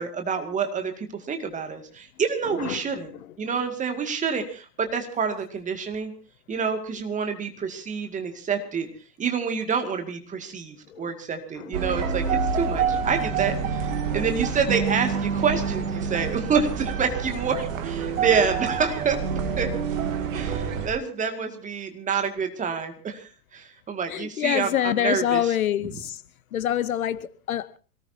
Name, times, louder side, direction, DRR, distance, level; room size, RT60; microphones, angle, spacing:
voice 1, 0.0-3.1 3.4-6.1 6.5-8.9 9.2-13.9 14.1-19.7 20.3-25.6 25.9-26.0, right 6 dB, 15° right, 2.2 m, -27 dB
sound 1, 11.7-20.9, right 6 dB, 50° right, 2.5 m, -27 dB
voice 2, 24.1-26.2 26.5-27.8, left 11 dB, 60° left, 0.9 m, -26 dB
26.0 x 18.5 x 2.8 m
figure-of-eight pair, 110°, 49 cm